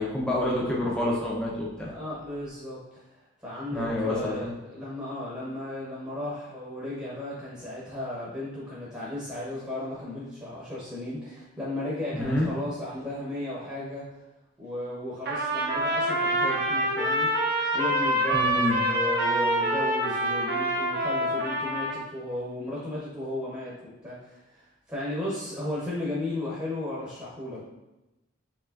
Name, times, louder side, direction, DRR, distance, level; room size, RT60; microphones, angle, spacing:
voice 1, 0.0-1.9 3.7-4.5 12.1-12.5 18.3-18.8, left 1 dB, 5° left, -5 dB, 0.7 m, -28 dB
voice 2, 1.9-14.2 14.6-17.3 17.7-23.7 24.0-27.6, left 1 dB, 15° right, -8 dB, 1.0 m, -35 dB
Trumpet, 15.2-22.0, right 1 dB, 50° right, 0.8 m, -26 dB
4.8 x 3.0 x 2.6 m, 0.99 s
head